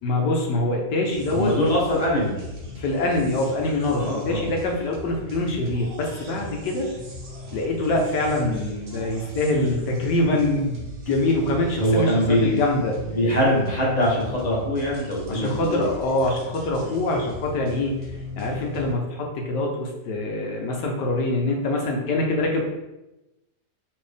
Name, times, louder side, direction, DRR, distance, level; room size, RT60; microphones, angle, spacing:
voice 1, 0.0-1.5 2.8-6.9 7.5-12.9 15.3-17.9 18.4-22.7, left 2 dB, 75° left, 1 dB, 1.4 m, -24 dB
sound 1, 1.1-19.0, left 1 dB, 65° right, 1.5 m, -38 dB
voice 2, 1.3-2.4 4.0-4.5 11.8-12.6 13.1-15.9, equal, 30° left, -4 dB, 0.8 m, -23 dB
4.5 x 2.9 x 3.4 m, 0.98 s
omnidirectional pair, 1.9 m